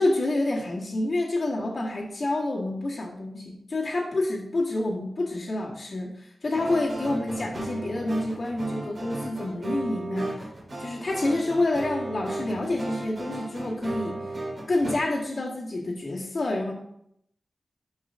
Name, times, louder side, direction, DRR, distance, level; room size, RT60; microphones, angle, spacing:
voice 1, 0.0-10.5 10.8-14.3 14.7-16.7, left 2 dB, 50° left, -6 dB, 2.0 m, -28 dB
sound 1, 6.5-14.9, right 1 dB, 50° right, 3.9 m, -35 dB
13.0 x 5.4 x 3.7 m, 0.74 s
wide cardioid pair, 120°, 0 cm